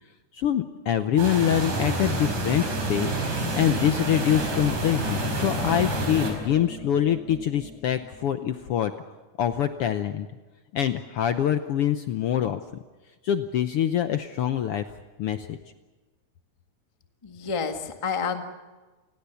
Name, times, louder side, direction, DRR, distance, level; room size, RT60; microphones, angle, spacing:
voice 1, 0.3-8.9 9.4-10.3 10.7-12.6 13.2-14.8 15.2-15.6, left 10 dB, 75° left, 9 dB, 1.3 m, -25 dB
sound 1, 1.2-6.3, right 2 dB, 85° right, 6.4 m, -28 dB
sound 2, 2.0-8.7, equal, ahead, 1.2 m, -39 dB
voice 2, 17.2-18.4, left 5 dB, 20° left, 5 dB, 0.8 m, -29 dB
28.5 x 20.5 x 7.0 m, 1.2 s
omnidirectional pair, 3.7 m